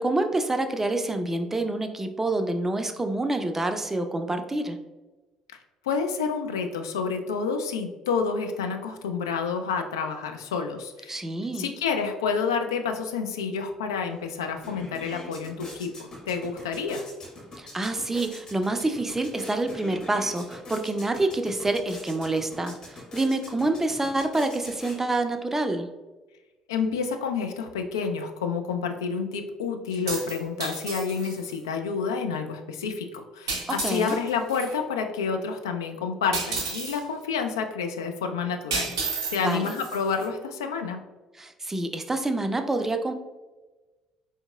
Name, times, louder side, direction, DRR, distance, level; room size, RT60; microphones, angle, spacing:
voice 1, 0.0-4.8 11.1-11.7 17.6-25.9 33.8-34.2 39.4-39.7 41.3-43.1, right 2 dB, 15° right, 6 dB, 0.4 m, -27 dB
voice 2, 5.8-11.2 11.5-17.0 26.7-38.9 39.3-41.0, left 5 dB, 75° left, 5 dB, 0.3 m, -29 dB
sound 1, 14.2-14.3 14.5-25.4, left 2 dB, 40° left, 1.2 m, -44 dB
sound 2, 29.9-31.6 33.5-34.7 36.3-37.0 38.7-40.3, right 4 dB, 75° right, 0.5 m, -32 dB
4.3 x 2.8 x 2.2 m, 1.2 s
figure-of-eight pair, 50°, 2 cm